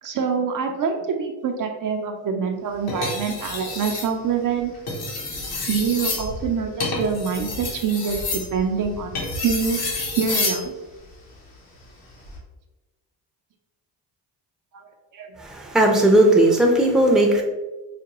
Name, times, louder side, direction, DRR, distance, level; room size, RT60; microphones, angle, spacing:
voice 1, 0.0-4.7 5.7-9.1 9.4-9.8 10.2-10.7 14.7-15.3, right 6 dB, 50° right, 3 dB, 0.5 m, -25 dB
sound 1, 2.9-4.1 4.7-10.7 12.1-12.4, left 2 dB, 60° left, 1.1 m, -29 dB
voice 2, 15.4-17.4, right 1 dB, ahead, 1 dB, 0.6 m, -17 dB
4.9 x 2.2 x 2.9 m, 1.1 s
cardioid pair, 85°, 42 cm